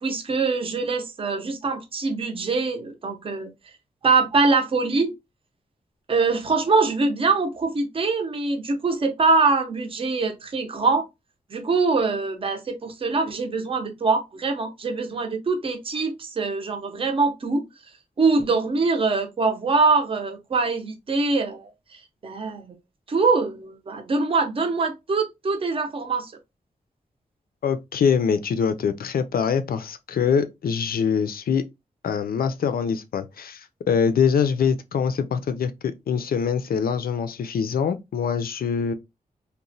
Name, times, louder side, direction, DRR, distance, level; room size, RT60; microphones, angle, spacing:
voice 1, 0.0-3.5 4.0-5.1 6.1-11.1 11.5-17.7 18.2-22.7 23.1-26.3, right 4 dB, 40° right, 0.5 m, -23 dB
voice 2, 27.6-31.6 32.0-38.9, left 6 dB, 90° left, 0.4 m, -24 dB
2.9 x 2.1 x 2.5 m
wide cardioid pair, 160°, 15 cm